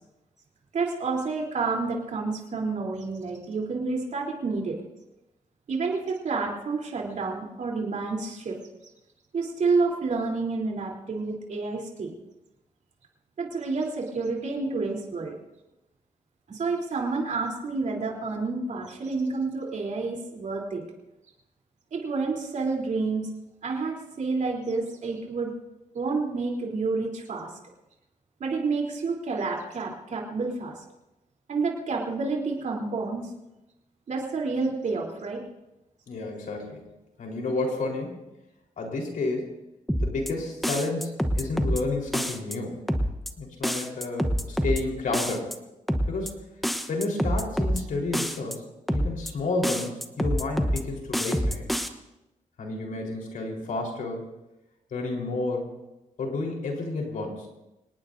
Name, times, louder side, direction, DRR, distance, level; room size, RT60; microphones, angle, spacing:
voice 1, 0.7-4.8 5.7-8.6 9.3-12.1 13.4-15.3 16.5-20.8 21.9-23.3 23.6-25.5 25.9-27.5 28.4-30.7 31.5-33.3 34.1-35.4, right 4 dB, 65° right, -2 dB, 3.5 m, -29 dB
voice 2, 36.1-36.9 37.2-38.2 38.8-39.5 40.0-42.8 43.4-45.5 46.1-46.4 46.9-48.6 48.9-51.7 52.6-54.2 54.9-55.7 56.2-57.5, left 2 dB, 90° left, 0 dB, 4.2 m, -31 dB
sound 1, 39.9-40.3 40.6-41.8 42.1-42.6 42.9-43.3 43.6-44.8 45.1-45.6 45.9-46.3 46.6-47.8 48.1-48.6 48.9-49.3 49.6-50.8 51.1-51.9, equal, ahead, 1.0 m, -26 dB
25.5 x 19.0 x 2.7 m, 0.97 s
wide cardioid pair, 140°, 13 cm